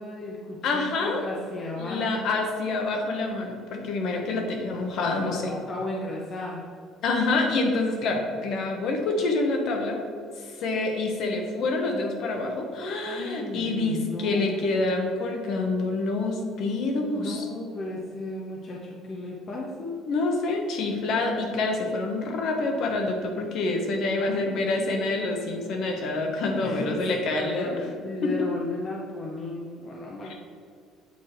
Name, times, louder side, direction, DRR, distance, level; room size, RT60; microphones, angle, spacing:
voice 1, 0.0-2.2 5.0-6.7 13.0-14.9 17.1-20.0 26.5-30.4, left 2 dB, 30° left, -2 dB, 0.6 m, -35 dB
voice 2, 0.6-1.3 1.8-5.5 7.0-10.0 10.4-17.5 20.1-27.8 28.2-28.5 30.2-30.4, left 3 dB, 50° left, 3 dB, 0.9 m, -27 dB
8.1 x 3.3 x 4.3 m, 2.3 s
cardioid pair, 160°, 0 cm